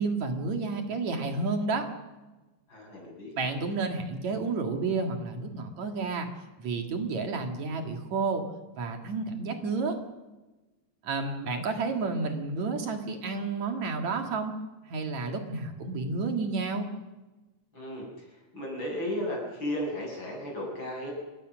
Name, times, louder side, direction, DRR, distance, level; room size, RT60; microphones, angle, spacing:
voice 1, 0.0-1.9 3.4-6.3 6.6-8.4 8.8-10.0 11.0-14.5 14.9-16.9, right 4 dB, 70° right, 4 dB, 3.4 m, -30 dB
voice 2, 2.7-3.5 17.7-18.3 18.5-21.1, left 1 dB, 40° left, -1 dB, 8.7 m, -34 dB
29.5 x 16.0 x 6.3 m, 1.1 s
omnidirectional pair, 3.3 m